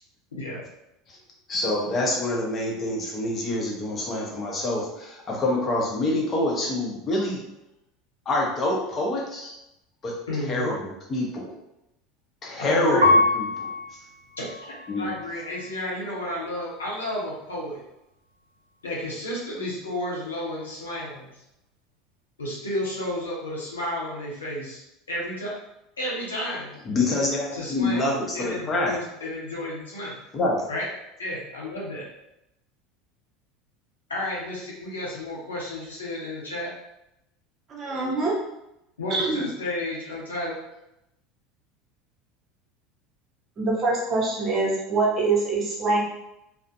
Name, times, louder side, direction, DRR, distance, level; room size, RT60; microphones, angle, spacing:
voice 1, 1.5-7.4 8.3-9.5 10.0-10.2 10.5-11.5 12.4-13.7 14.9-15.1 26.9-29.0 30.3-30.7, left 2 dB, 35° left, -1 dB, 0.7 m, -26 dB
voice 2, 10.3-10.7 12.5-13.1 14.4-17.8 18.8-21.3 22.4-24.8 25.1-25.5 26.0-26.8 27.5-30.1 30.7-30.9 31.2-32.1 34.1-36.7 39.0-40.6, left 1 dB, 85° left, -5 dB, 0.7 m, -32 dB
Piano, 13.0-15.8 16.4-17.1, left 2 dB, 80° right, 0.4 m, -26 dB
voice 3, 37.7-38.3 39.1-39.4 43.6-46.0, right 3 dB, 35° right, -3 dB, 0.8 m, -24 dB
2.4 x 2.1 x 2.6 m, 0.87 s
figure-of-eight pair, 75°, 0 cm